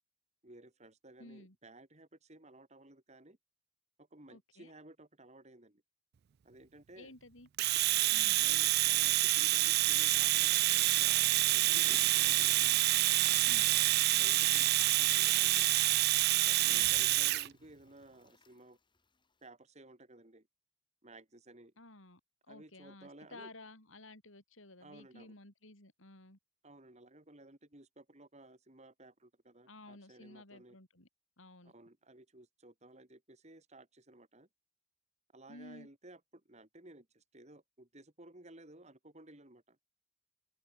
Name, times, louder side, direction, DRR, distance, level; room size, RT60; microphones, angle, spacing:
voice 1, 0.4-3.4 4.0-5.8 6.4-7.1 8.4-12.3 14.2-15.7 16.5-18.8 19.4-20.5 21.0-21.7 22.5-23.5 24.8-25.3 26.6-30.8 31.6-34.5 35.3-39.8, right 2 dB, 35° right, 3.4 m, -56 dB
voice 2, 1.2-1.5 4.3-4.7 7.0-7.5 8.1-8.4 13.4-13.8 16.6-17.0 21.8-22.2 22.5-26.4 29.7-31.1 31.4-31.7 35.5-35.9, left 2 dB, 80° left, 6.6 m, -54 dB
Domestic sounds home sounds, 7.6-17.5, right 17 dB, 50° right, 0.3 m, -27 dB
Toilet flush, 11.6-18.7 19.0-19.1, left 4 dB, 25° left, 4.4 m, -56 dB
open air
head